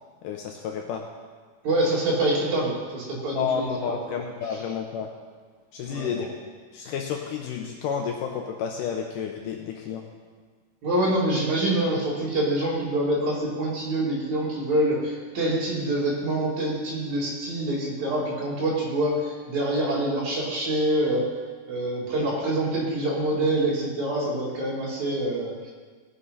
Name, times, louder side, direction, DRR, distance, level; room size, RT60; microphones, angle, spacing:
voice 1, 0.2-1.0 3.4-5.1 5.7-6.3 6.7-10.1, left 7 dB, 80° left, 2 dB, 1.9 m, -30 dB
voice 2, 1.6-4.0 5.8-6.3 10.8-21.2 21.7-25.7, right 1 dB, 50° right, -5 dB, 3.9 m, -26 dB
17.5 x 7.1 x 5.4 m, 1.5 s
omnidirectional pair, 4.6 m